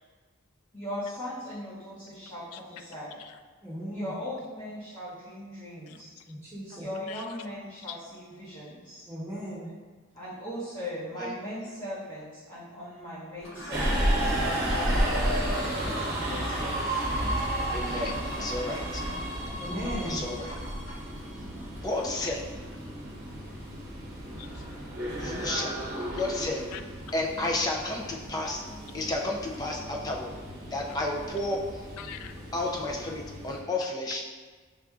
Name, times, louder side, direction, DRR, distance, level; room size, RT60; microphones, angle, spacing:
voice 1, 0.7-3.2 3.9-6.1 6.7-9.1 10.1-14.4 14.7-17.0 18.7-19.3 21.3-21.8, left 1 dB, 35° left, 1.0 m, -39 dB
voice 2, 3.6-4.1 6.3-6.9 9.1-9.7 19.6-20.2, equal, 15° right, 1.0 m, -36 dB
voice 3, 5.9-6.3 6.7-6.8 7.1-7.3 7.9-8.0 8.6-8.7 17.4-18.2 20.6-20.7 22.2-22.4 24.3-24.7 26.1-26.2 26.7-26.8 32.0-32.4, left 9 dB, 90° left, 0.3 m, -45 dB
Toilet flush, 13.4-26.7, equal, 60° left, 0.9 m, -45 dB
Subway metro underground, 13.7-33.6, right 1 dB, 50° right, 0.9 m, -32 dB
voice 4, 17.7-19.0 20.1-20.5 21.7-22.4 25.2-25.8 26.1-26.7 27.1-28.7 28.9-30.3 30.7-31.9 32.5-34.2, left 2 dB, 15° left, 0.4 m, -32 dB
6.6 x 2.5 x 2.4 m
head